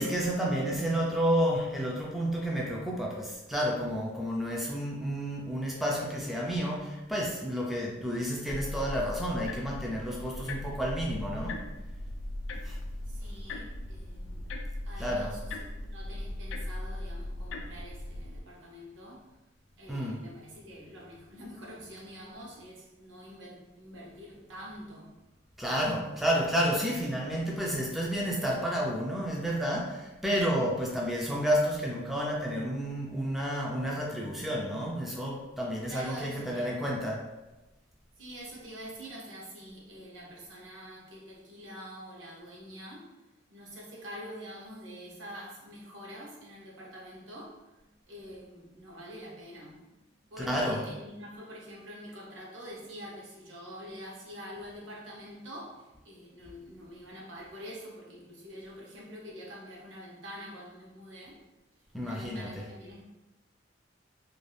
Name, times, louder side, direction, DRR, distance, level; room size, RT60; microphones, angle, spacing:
voice 1, 0.0-11.7 12.6-12.8 15.0-15.3 19.9-20.3 25.6-37.3 50.4-50.8 61.9-62.7, equal, ahead, -3 dB, 0.3 m, -30 dB
sound 1, 8.5-18.4, left 1 dB, 80° left, 0.4 m, -38 dB
voice 2, 13.1-14.5 14.8-19.3 19.8-25.2 35.9-36.8 38.2-43.1 43.5-49.9 50.3-61.4 62.0-63.0, equal, 70° right, -3 dB, 0.8 m, -46 dB
2.5 x 2.2 x 3.3 m, 1.0 s
head